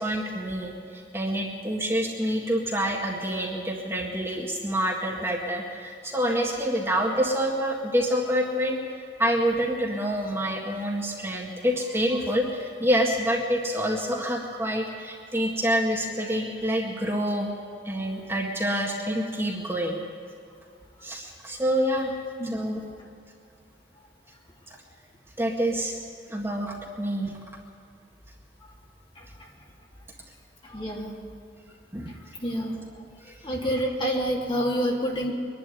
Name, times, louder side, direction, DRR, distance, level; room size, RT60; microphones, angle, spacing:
voice 1, 0.0-17.5 17.8-20.0 21.0-22.2 22.5-22.8 24.7-24.8 25.4-26.0 26.3-27.4 31.9-32.2 33.2-33.4, equal, 15° right, -1 dB, 1.8 m, -27 dB
voice 2, 30.6-31.1 32.4-32.8 33.4-35.3, equal, 30° left, -2 dB, 3.3 m, -27 dB
23.5 x 11.5 x 9.8 m, 2.6 s
head